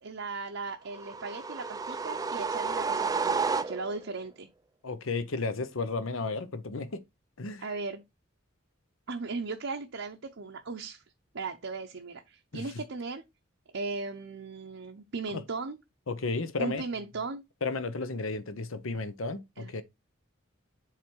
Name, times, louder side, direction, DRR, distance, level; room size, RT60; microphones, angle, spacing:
voice 1, 0.0-4.5 7.6-8.0 9.1-11.0 11.3-13.2 13.7-15.8 16.6-17.4 19.6-19.7, right 4 dB, 60° right, 0.7 m, -37 dB
sound 1, 0.9-4.1, right 5 dB, 15° right, 0.3 m, -31 dB
voice 2, 4.8-7.0 7.4-7.6 12.5-12.6 16.1-16.8 17.6-19.8, left 3 dB, 70° left, 0.8 m, -33 dB
7.4 x 3.4 x 4.5 m
head